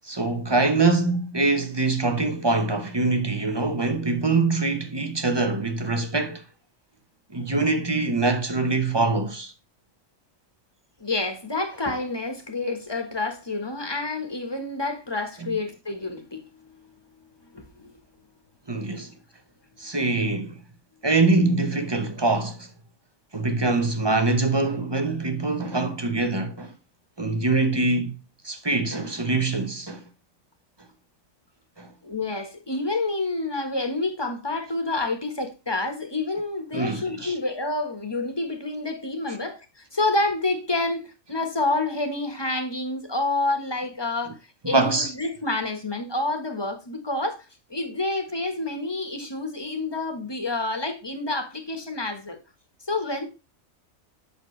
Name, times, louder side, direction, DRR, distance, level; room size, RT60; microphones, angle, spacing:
voice 1, 0.0-6.4 7.3-9.5 18.7-19.1 19.8-20.6 21.0-22.7 23.3-26.7 27.2-28.1 28.4-30.0 31.8-31.9 36.7-37.3 44.6-45.1, right 3 dB, 20° right, 0.8 m, -24 dB
voice 2, 11.0-16.4 17.5-17.9 19.0-19.1 32.0-44.4 44.6-52.4 52.9-53.2, left 2 dB, 20° left, 1.3 m, -28 dB
8.4 x 6.1 x 3.2 m
omnidirectional pair, 1.4 m